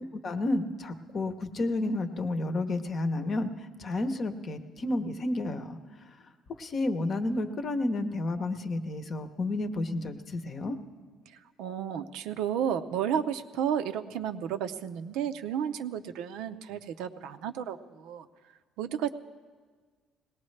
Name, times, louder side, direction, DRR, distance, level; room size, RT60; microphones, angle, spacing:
voice 1, 0.1-5.8 6.6-10.8, left 2 dB, 35° left, 8 dB, 0.8 m, -31 dB
voice 2, 11.6-18.3 18.8-19.1, right 9 dB, 80° right, 8 dB, 0.6 m, -32 dB
20.5 x 18.0 x 3.2 m, 1.5 s
cardioid pair, 135°, 0 cm